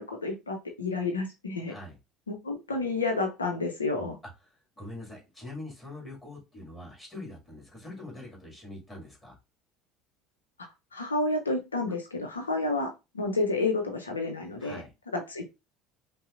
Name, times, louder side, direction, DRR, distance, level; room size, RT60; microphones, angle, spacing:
voice 1, 0.0-1.7 2.3-4.2 10.9-14.8 15.1-15.5, left 3 dB, 85° left, 0.5 m, -30 dB
voice 2, 4.8-9.4 14.6-14.9, left 2 dB, 15° left, 2.0 m, -43 dB
5.4 x 2.0 x 2.5 m
figure-of-eight pair, 65°, 0 cm